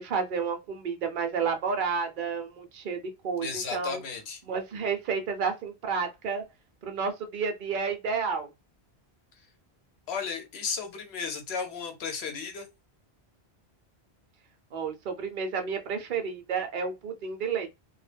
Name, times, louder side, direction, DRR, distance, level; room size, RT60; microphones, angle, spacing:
voice 1, 0.0-4.0 4.4-6.4 6.8-8.5 14.7-17.7, right 5 dB, 55° right, 0.7 m, -31 dB
voice 2, 3.4-4.4 9.3-9.5 10.1-12.7, left 5 dB, 80° left, 0.9 m, -34 dB
2.2 x 2.1 x 3.3 m
omnidirectional pair, 1.1 m